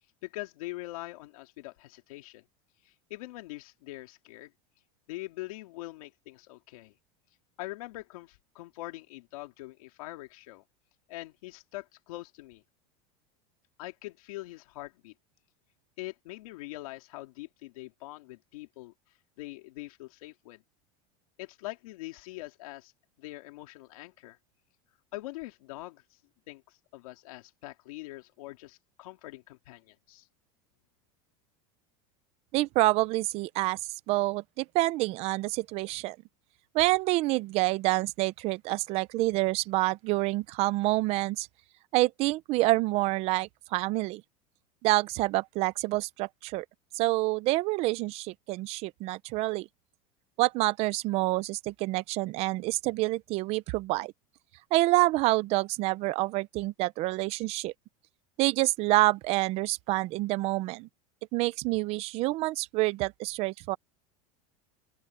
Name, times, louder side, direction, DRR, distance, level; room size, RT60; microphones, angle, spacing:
voice 1, 0.2-2.4 2.8-4.5 5.1-6.9 7.6-10.6 11.1-12.6 13.8-15.1 16.0-18.9 19.4-20.6 21.4-22.9 23.2-24.4 25.1-26.2 26.5-30.3, left 19 dB, 75° left, 3.2 m, -43 dB
voice 2, 32.5-33.8 34.1-36.2 36.7-41.5 41.9-44.2 44.8-46.6 46.9-49.7 50.4-54.1 54.7-57.7 58.4-60.9 61.3-63.8, right 20 dB, 35° right, 0.6 m, -27 dB
open air
supercardioid pair, 170°, 18 cm